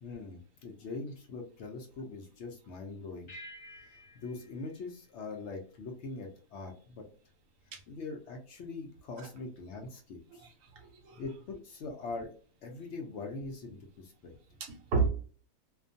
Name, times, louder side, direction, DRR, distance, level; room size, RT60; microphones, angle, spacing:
voice 1, 0.0-3.3 3.8-7.1 7.9-10.5 11.2-12.3 12.6-14.3, left 3 dB, 65° left, 3 dB, 0.7 m, -42 dB
sound 1, 3.3-6.0, equal, 45° left, 1.0 m, -52 dB
voice 2, 10.3-11.2 14.6-15.1, right 5 dB, 70° right, 4 dB, 0.9 m, -32 dB
2.4 x 2.2 x 2.5 m, 0.41 s
omnidirectional pair, 1.6 m